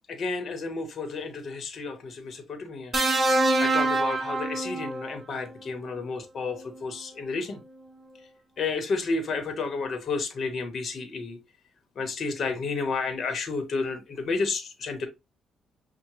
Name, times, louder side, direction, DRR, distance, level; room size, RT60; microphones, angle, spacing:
voice 1, 0.1-2.9 3.6-7.6 8.6-11.4 12.0-15.1, left 4 dB, 55° left, 0.9 m, -31 dB
sound 1, 2.9-5.2 6.5-6.7, right 2 dB, 25° right, 1.1 m, -25 dB
5.7 x 2.1 x 3.0 m
cardioid pair, 90°, 0 cm